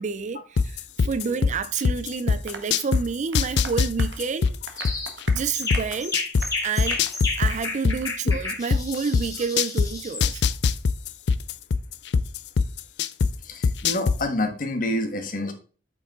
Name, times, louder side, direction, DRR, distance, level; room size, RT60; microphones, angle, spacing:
voice 1, 0.0-4.6 5.3-6.2 6.6-7.0 7.4-10.4, right 5 dB, 45° right, 0.4 m, -29 dB
sound 1, 0.6-3.0 3.3-6.4 6.8-9.9 10.2-13.3 13.6-14.2, left 5 dB, 70° left, 0.4 m, -21 dB
Applause, 2.5-7.7 8.0-8.2 8.5-8.6 8.9-9.0, right 4 dB, 85° right, 1.2 m, -41 dB
sound 2, 4.8-5.1 5.5-10.3, left 3 dB, 20° left, 2.1 m, -32 dB
voice 2, 13.4-15.5, left 1 dB, 50° left, 1.4 m, -27 dB
8.4 x 5.1 x 3.6 m
head